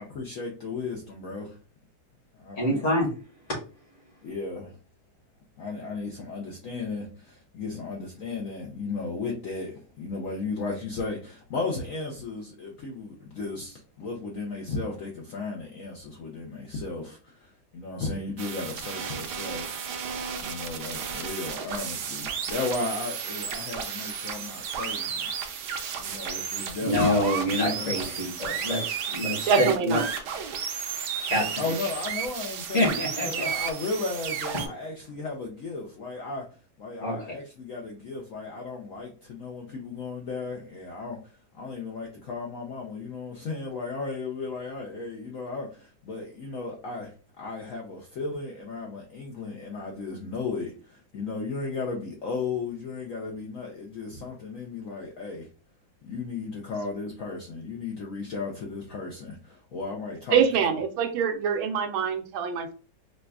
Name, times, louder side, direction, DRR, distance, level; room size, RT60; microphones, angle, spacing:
voice 1, 0.0-1.6 2.4-2.8 4.2-4.8 5.6-19.8 20.4-25.3 26.0-27.3 27.6-28.2 31.6-32.9 33.2-36.5 36.8-41.2 41.5-55.5 56.0-60.4 60.7-60.8, left 3 dB, 75° left, 0 dB, 0.7 m, -35 dB
voice 2, 2.6-3.1 3.5-3.6 26.8-28.8 29.1-30.0 31.2-31.9 32.7-33.5 34.5-34.7 37.0-37.4, left 1 dB, 45° left, -1 dB, 1.2 m, -26 dB
sound 1, 18.4-34.7, right 7 dB, 70° right, 1.1 m, -33 dB
voice 3, 29.5-30.1 60.3-62.7, right 7 dB, 90° right, 5 dB, 1.4 m, -24 dB
5.0 x 2.2 x 2.3 m, 0.38 s
omnidirectional pair, 2.1 m